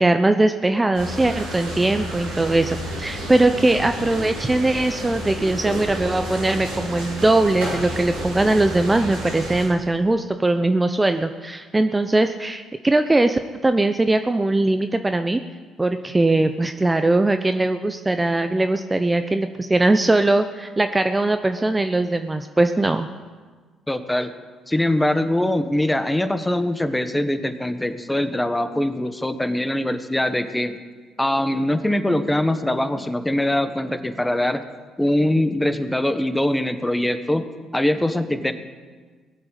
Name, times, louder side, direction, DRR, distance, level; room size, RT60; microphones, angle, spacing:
voice 1, 0.0-15.4 15.8-23.1, right 2 dB, 20° right, 8 dB, 0.8 m, -20 dB
sound 1, 0.9-9.6, equal, 85° right, 6.2 m, -31 dB
voice 2, 23.9-24.3 24.7-30.8 31.2-34.6 35.0-37.5 37.7-38.5, left 1 dB, 10° left, 10 dB, 1.4 m, -22 dB
18.5 x 7.7 x 9.2 m, 1.5 s
hypercardioid pair, 55°, 0 cm